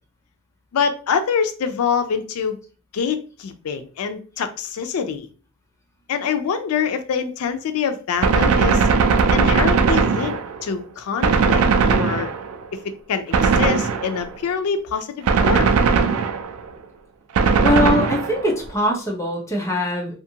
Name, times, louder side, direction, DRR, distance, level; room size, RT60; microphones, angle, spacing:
voice 1, 0.7-2.6 2.9-5.3 6.1-8.9 9.3-12.3 12.7-15.7, left 6 dB, 80° left, 0.4 m, -25 dB
Gunshot gunfire, 8.2-10.7 11.2-12.6 13.3-14.4 15.3-16.6 17.4-18.6, right 5 dB, 75° right, 0.3 m, -18 dB
voice 2, 17.6-20.2, left 1 dB, 15° left, 0.6 m, -22 dB
2.5 x 2.5 x 2.7 m
head